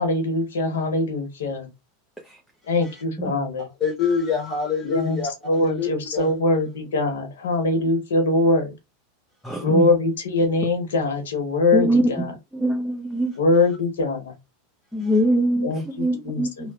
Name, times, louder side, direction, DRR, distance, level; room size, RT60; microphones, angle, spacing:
voice 1, 0.0-1.7 2.7-3.6 4.8-5.2 5.5-8.7 9.6-12.3 13.4-14.3 15.6-16.7, left 2 dB, 85° left, 0.9 m, -22 dB
voice 2, 3.6-6.3 9.5-9.6 15.0-15.2, left 6 dB, 25° left, 1.0 m, -27 dB
voice 3, 9.4-9.9 11.7-12.0 12.5-13.3 14.9-16.7, right 1 dB, ahead, 0.5 m, -22 dB
2.8 x 2.0 x 2.3 m
hypercardioid pair, 115°, 0 cm